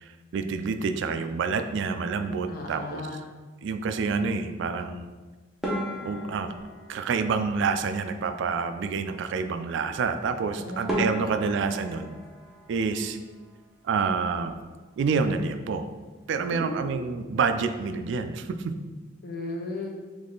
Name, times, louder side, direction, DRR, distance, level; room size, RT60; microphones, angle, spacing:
voice 1, 0.0-3.0 3.6-5.1 6.0-6.5 6.9-12.1 12.7-13.2 13.8-14.6 15.0-15.9 16.3-18.7, right 5 dB, 65° right, 8 dB, 0.3 m, -28 dB
voice 2, 2.5-3.3 10.6-10.9 11.2-11.4 16.5-16.9 19.2-19.9, left 2 dB, 50° left, 0 dB, 0.7 m, -35 dB
sound 1, 5.6-8.1 10.3-10.4 10.9-13.6 13.9-14.7 15.0-15.2 15.5-15.6 16.2-16.5, equal, ahead, 0.7 m, -35 dB
3.5 x 3.2 x 3.8 m, 1.3 s
head